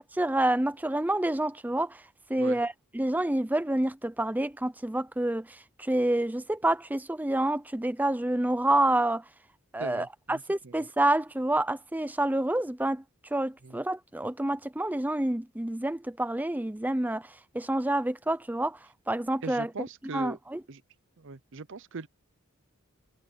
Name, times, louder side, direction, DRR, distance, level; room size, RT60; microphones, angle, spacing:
voice 1, 0.0-2.0 2.3-9.2 9.7-13.0 13.3-18.8 19.1-19.7 20.1-20.6, right 1 dB, 10° right, 0.5 m, -28 dB
voice 2, 9.8-10.9 13.6-13.8 19.4-20.4 20.7-20.8 21.2-22.1, right 4 dB, 60° right, 0.7 m, -40 dB
head